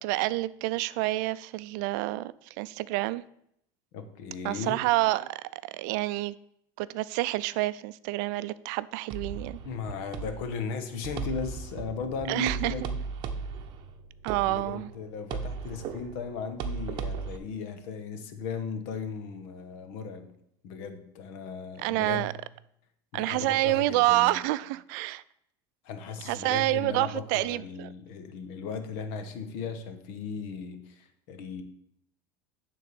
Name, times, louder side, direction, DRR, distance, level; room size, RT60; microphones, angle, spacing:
voice 1, 0.0-2.3 2.6-3.2 4.4-6.3 6.8-9.6 12.3-12.7 14.2-14.9 21.8-22.3 23.1-25.2 26.2-27.9, right 18 dB, 75° right, 0.4 m, -28 dB
voice 2, 3.9-4.8 9.6-13.0 14.5-20.3 20.6-22.3 23.1-24.3 25.8-31.6, left 5 dB, 70° left, 1.2 m, -37 dB
sound 1, 9.1-17.4, right 5 dB, 50° right, 0.8 m, -37 dB
9.5 x 3.8 x 6.9 m
supercardioid pair, 130°, 10 cm